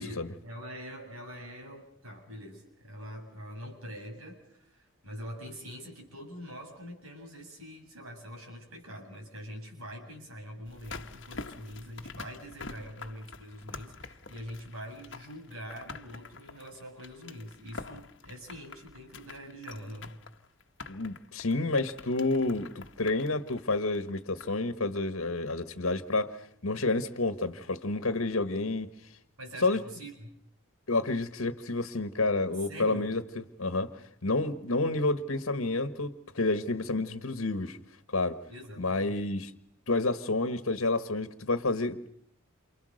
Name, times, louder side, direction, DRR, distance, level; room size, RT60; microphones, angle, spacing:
voice 1, 0.0-20.2 29.4-30.4 32.7-33.1 38.5-39.2, equal, 90° right, 7.9 m, -44 dB
sound 1, 10.7-24.7 25.0-25.1, left 4 dB, 60° left, 1.4 m, -46 dB
voice 2, 20.9-28.9 29.6-29.8 30.9-33.2 33.6-37.8 38.1-38.4 38.8-39.5 39.9-42.1, left 2 dB, 80° left, 1.5 m, -29 dB
29.0 x 28.0 x 6.5 m
head